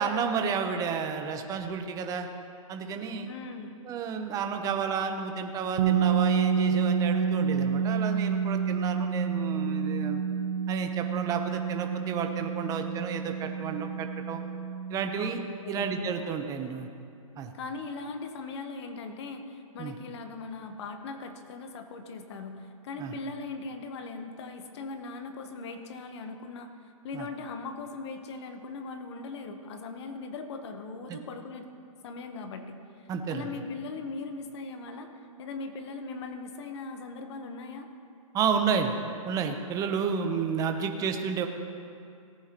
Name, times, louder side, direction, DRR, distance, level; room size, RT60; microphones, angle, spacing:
voice 1, 0.0-2.3 2.7-3.3 3.8-10.2 10.7-14.4 14.9-15.4 15.7-16.9 17.4-17.5 19.8-19.9 23.0-23.1 27.1-27.2 31.1-31.2 33.1-33.5 38.3-38.9 39.2-41.5, right 6 dB, 20° right, 5 dB, 0.8 m, -31 dB
voice 2, 3.3-3.8 15.1-15.4 15.6-16.0 17.5-31.7 32.0-35.1 35.4-37.9, left 4 dB, 50° left, 6 dB, 1.1 m, -39 dB
sound 1, 5.8-15.5, right 7 dB, 45° right, 1.0 m, -28 dB
18.0 x 9.3 x 3.0 m, 2.4 s
hypercardioid pair, 140°, 18 cm